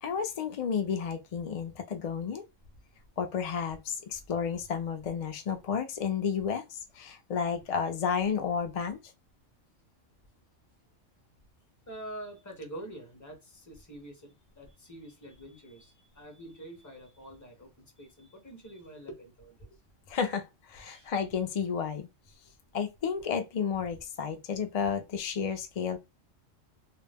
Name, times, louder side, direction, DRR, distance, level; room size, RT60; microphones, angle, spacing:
voice 1, 0.0-2.4 3.2-9.0 20.1-22.1 22.7-26.0, left 6 dB, 70° left, 0.3 m, -32 dB
voice 2, 11.9-19.8 20.1-20.2 20.9-21.1, right 1 dB, 20° left, 0.6 m, -46 dB
2.3 x 2.0 x 3.3 m
omnidirectional pair, 1.3 m